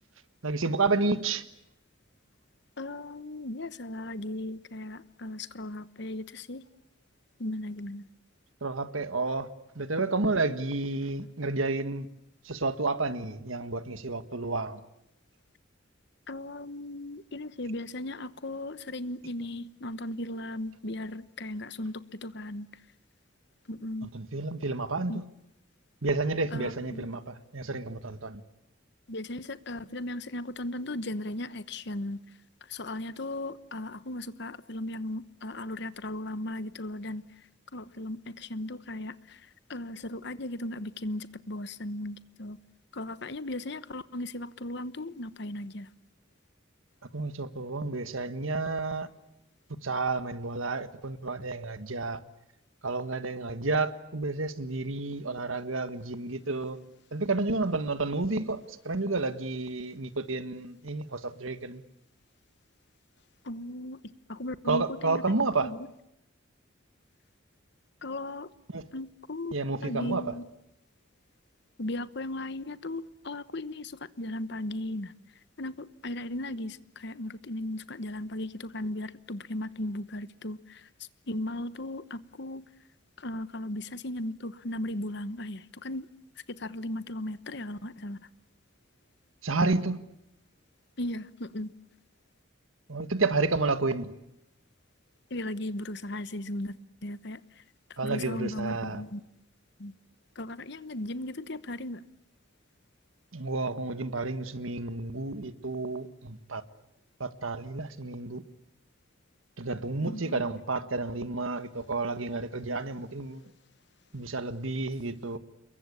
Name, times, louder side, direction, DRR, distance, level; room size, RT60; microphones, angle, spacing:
voice 1, 0.4-1.4 8.6-12.1 12.4-14.8 24.1-25.2 26.0-28.4 47.1-49.1 49.8-52.2 52.8-56.8 57.1-61.8 64.7-65.7 68.7-68.8 69.5-70.3 89.4-90.0 92.9-94.1 98.0-99.0 103.3-106.6 107.2-108.4 109.6-113.4 114.1-115.4, right 3 dB, 80° right, 1.6 m, -30 dB
voice 2, 2.8-6.7 7.4-8.1 16.3-22.8 23.7-24.1 25.1-25.2 26.5-27.1 29.1-32.2 32.6-37.5 37.7-42.6 42.9-45.9 63.4-64.0 64.3-65.8 68.0-68.5 68.9-70.4 71.8-75.1 75.6-80.9 81.3-82.7 83.2-86.1 86.5-88.2 91.0-91.7 95.3-97.6 98.0-99.2 99.8-99.9 100.3-102.0 110.0-110.4, left 1 dB, 55° left, 1.1 m, -37 dB
28.5 x 22.5 x 8.5 m
head